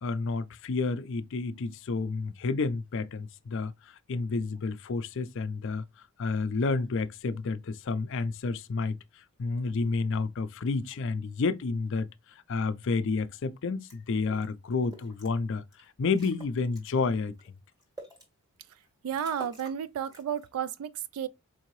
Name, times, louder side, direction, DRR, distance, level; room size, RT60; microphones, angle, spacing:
voice 1, 0.0-5.8 6.2-12.1 12.5-15.6 16.0-17.3, left 4 dB, 55° left, 0.4 m, -30 dB
sound 1, 13.9-14.0 14.3-14.5 14.9-15.3 15.7-15.8 16.1-16.9 17.4-18.2 18.7-18.8 19.1-19.8 20.0-20.5, right 1 dB, 15° right, 1.5 m, -48 dB
voice 2, 19.0-21.3, right 9 dB, 75° right, 0.3 m, -32 dB
4.5 x 2.7 x 3.0 m
head